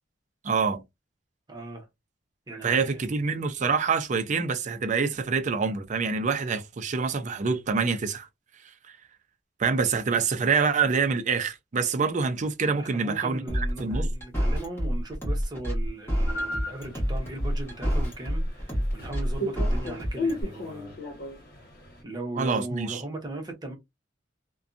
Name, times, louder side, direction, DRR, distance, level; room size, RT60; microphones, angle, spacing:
voice 1, 0.4-0.8 2.6-8.3 9.6-14.1 22.4-23.0, right 5 dB, 40° right, 0.4 m, -26 dB
voice 2, 1.5-1.9 2.5-3.0 12.7-21.0 22.0-23.7, right 2 dB, 20° right, 0.9 m, -38 dB
sound 1, 13.5-20.4, equal, 15° left, 1.2 m, -27 dB
sound 2, 16.3-22.0, left 1 dB, 55° left, 1.0 m, -36 dB
2.6 x 2.2 x 2.5 m
head